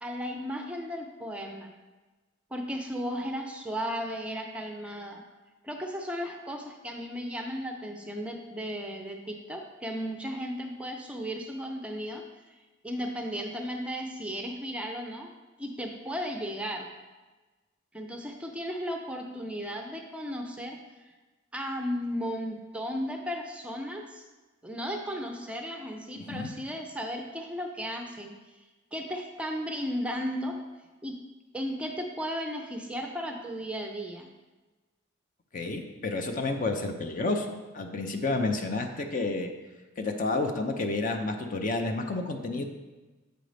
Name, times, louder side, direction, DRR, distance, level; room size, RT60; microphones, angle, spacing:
voice 1, 0.0-1.7 2.5-5.2 5.6-12.2 12.5-12.6 12.8-15.3 15.6-16.9 17.9-20.8 21.5-24.2 24.6-28.3 28.9-30.6 31.0-31.2 31.5-34.3, equal, 5° right, 3 dB, 0.5 m, -35 dB
voice 2, 35.5-39.5 40.0-42.6, left 2 dB, 40° left, 5 dB, 0.5 m, -30 dB
7.8 x 5.2 x 3.3 m, 1.2 s
head